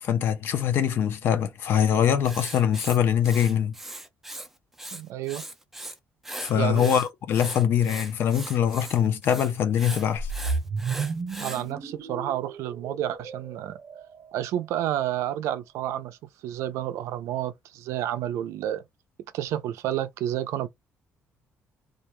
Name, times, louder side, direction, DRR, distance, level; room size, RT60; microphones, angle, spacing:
voice 1, 0.0-3.7 6.4-10.3, left 9 dB, 50° left, 0.5 m, -23 dB
Writing, 2.2-4.5 4.7-5.9 6.2-11.6, right 1 dB, 5° right, 0.4 m, -39 dB
voice 2, 4.9-5.4 6.5-6.9 11.4-13.8 14.3-16.2 16.4-18.8 19.3-20.7, right 12 dB, 85° right, 0.4 m, -30 dB
sound 1, 10.2-14.4, right 4 dB, 35° right, 0.8 m, -33 dB
2.4 x 2.2 x 2.9 m
cardioid pair, 175°, 5 cm